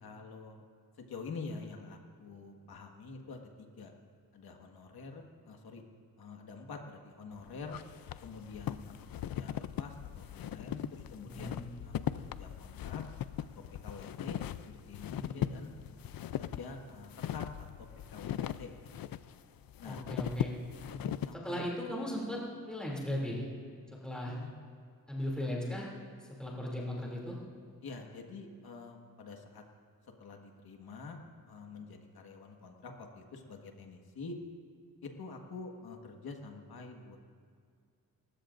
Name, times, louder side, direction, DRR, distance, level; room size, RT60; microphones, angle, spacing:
voice 1, 0.0-0.6 1.0-3.9 4.3-5.8 6.2-7.8 8.2-12.0 12.4-13.0 13.8-14.4 14.6-15.7 16.3-17.7 18.1-18.7 19.0-19.1 19.8-20.0 20.9-21.0 21.3-21.7 22.9-23.1 24.2-24.6 27.8-29.6 30.2-31.2 31.5-34.4 35.0-37.2, left 4 dB, 90° left, 3 dB, 1.7 m, -47 dB
sound 1, 7.3-21.3, left 11 dB, 70° left, 0.5 m, -39 dB
voice 2, 11.2-11.7 15.1-15.4 19.8-20.5 21.4-22.4 22.7-23.5 24.0-24.4 25.1-25.9 26.4-27.4, left 1 dB, ahead, -4 dB, 2.8 m, -37 dB
30.0 x 15.5 x 2.6 m, 2.2 s
wide cardioid pair, 130°, 36 cm